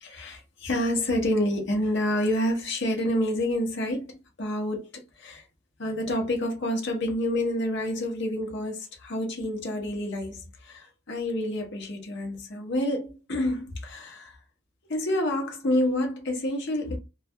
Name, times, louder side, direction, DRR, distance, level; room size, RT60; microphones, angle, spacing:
voice 1, 0.0-5.4 5.8-14.4 14.9-17.0, left 1 dB, 55° left, 0.7 m, -28 dB
2.3 x 2.2 x 2.6 m
head